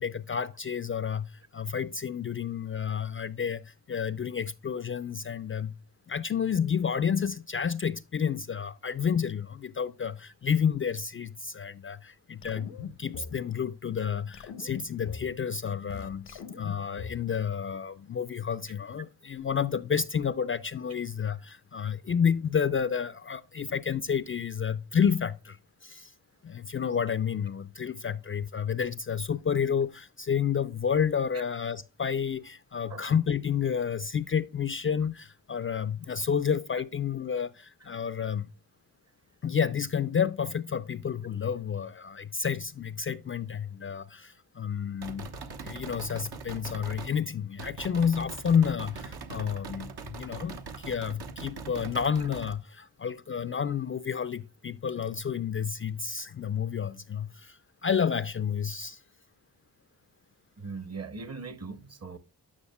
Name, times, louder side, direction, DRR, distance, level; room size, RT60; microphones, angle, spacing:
voice 1, 0.0-5.7 6.1-12.7 13.0-26.1 26.4-38.5 39.4-45.3 45.6-59.0, left 7 dB, 35° left, 0.4 m, -30 dB
sound 1, 12.4-13.4 14.0-14.1 14.3-15.3 15.7-17.3, left 6 dB, 85° left, 0.9 m, -41 dB
sound 2, 45.0-47.2 47.6-52.6, right 4 dB, 70° right, 1.1 m, -41 dB
voice 2, 60.6-62.2, right 4 dB, 40° right, 1.0 m, -40 dB
9.6 x 6.3 x 2.2 m
cardioid pair, 45°, 40 cm